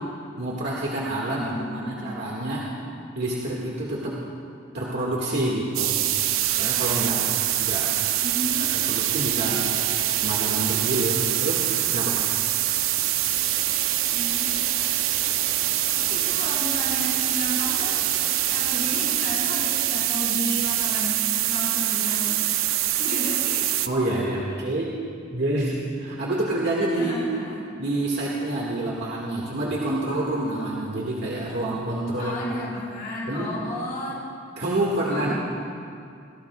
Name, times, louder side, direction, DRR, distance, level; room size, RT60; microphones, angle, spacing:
voice 1, 0.4-2.7 3.1-4.2 4.7-6.0 6.6-7.2 7.6-7.9 8.9-9.7 10.2-11.7 11.9-12.2 23.9-24.9 25.3-27.3 27.8-32.4 33.3-33.5 34.6-35.3, right 1 dB, 60° right, -4 dB, 1.9 m, -27 dB
voice 2, 1.3-1.9 8.2-8.7 9.4-9.7 14.1-14.5 16.0-18.1 18.5-21.2 21.5-22.4 22.9-23.8 27.0-27.6 29.0-29.1 32.2-34.2 35.1-35.3, equal, 45° left, -8 dB, 4.8 m, -33 dB
sound 1, 5.7-23.9, right 12 dB, 80° right, 0.6 m, -24 dB
27.5 x 17.5 x 2.4 m, 2.4 s
head